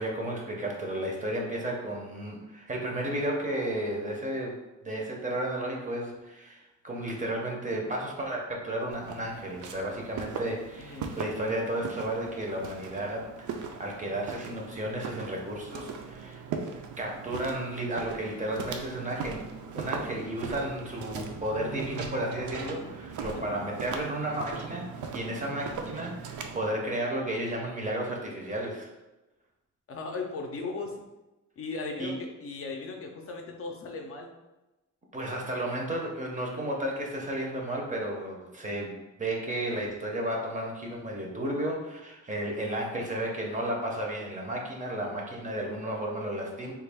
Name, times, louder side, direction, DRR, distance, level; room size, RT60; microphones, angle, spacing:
voice 1, 0.0-4.6 4.8-16.4 17.0-28.9 32.0-32.2 35.1-46.7, right 1 dB, 25° right, -1 dB, 0.5 m, -33 dB
Walk footsteps, 8.9-26.6, right 5 dB, 70° right, 0.5 m, -39 dB
voice 2, 10.8-11.2 23.3-23.6 29.9-31.0 31.6-34.3, left 3 dB, 45° left, 2 dB, 0.5 m, -37 dB
3.4 x 2.2 x 3.3 m, 1.0 s
wide cardioid pair, 155°, 31 cm